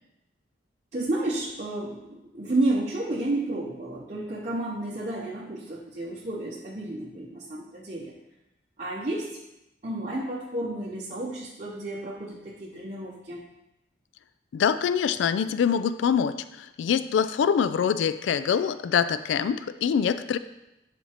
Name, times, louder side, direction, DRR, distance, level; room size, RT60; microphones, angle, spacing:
voice 1, 0.9-8.1 8.8-9.4 9.8-13.4, right 2 dB, 35° right, -4 dB, 0.7 m, -31 dB
voice 2, 14.5-20.4, left 7 dB, 75° left, 13 dB, 0.3 m, -24 dB
11.5 x 4.3 x 2.9 m, 0.93 s
head